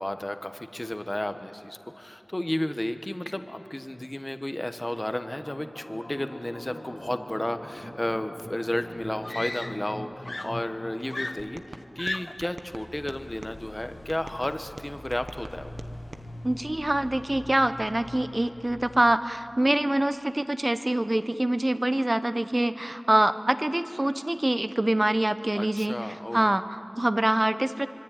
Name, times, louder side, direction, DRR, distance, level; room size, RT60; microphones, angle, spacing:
voice 1, 0.0-15.7 25.5-26.5, left 1 dB, 30° left, 8 dB, 1.2 m, -33 dB
sound 1, 5.4-19.2, left 1 dB, 75° left, 5.1 m, -44 dB
Screaming, 8.4-8.5 9.2-10.0 10.3-12.6 13.5-13.8, left 2 dB, 50° left, 0.5 m, -36 dB
sound 2, 11.4-13.6 14.1-16.3, right 2 dB, 90° right, 0.9 m, -45 dB
voice 2, 16.4-25.9 26.3-27.9, right 1 dB, 35° right, 12 dB, 0.9 m, -25 dB
25.5 x 22.5 x 9.1 m, 2.9 s
wide cardioid pair, 45°, 0 cm